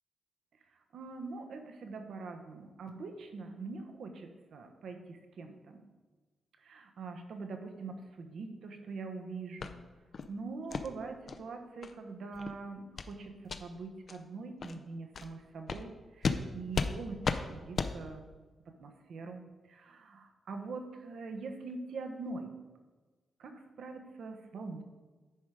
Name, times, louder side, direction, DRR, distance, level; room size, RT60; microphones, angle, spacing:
voice 1, 0.9-5.8 6.6-9.8 10.3-18.2 18.8-22.5 23.4-24.8, right 3 dB, 70° right, 5 dB, 1.1 m, -43 dB
sound 1, 9.6-9.7 10.1-10.3 10.7-10.9 11.3-11.4 11.8-11.9 12.3-12.5 13.0-13.1 13.4-13.6 14.1-14.2 14.6-14.7 15.1-15.3 15.7-15.8 16.2-16.4 16.7-16.9 17.2-17.4 17.8-17.9, left 5 dB, 45° left, 0.5 m, -33 dB
10.5 x 5.1 x 4.8 m, 1.3 s
wide cardioid pair, 140°, 0 cm